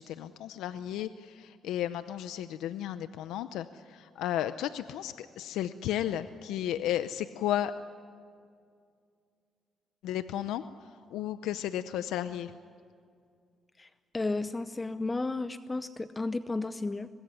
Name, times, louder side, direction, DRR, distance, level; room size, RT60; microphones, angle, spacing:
voice 1, 0.0-7.7 10.0-10.6 11.1-12.5, left 11 dB, 90° left, 12 dB, 0.7 m, -33 dB
voice 2, 13.8-17.1, left 3 dB, 20° left, 12 dB, 0.7 m, -33 dB
24.0 x 21.0 x 9.9 m, 2.3 s
cardioid pair, 90°, 0 cm